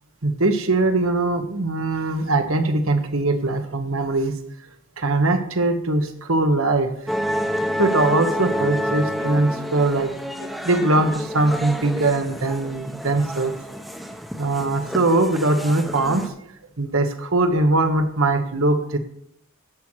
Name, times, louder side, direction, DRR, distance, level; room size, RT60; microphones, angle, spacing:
voice 1, 0.2-4.3 5.0-7.1 7.8-10.1 10.4-13.5 14.4-16.2 16.8-19.0, right 2 dB, 70° right, 7 dB, 1.3 m, -21 dB
sound 1, 7.1-16.3, equal, ahead, 0.8 m, -29 dB
11.5 x 7.7 x 4.6 m, 0.72 s
head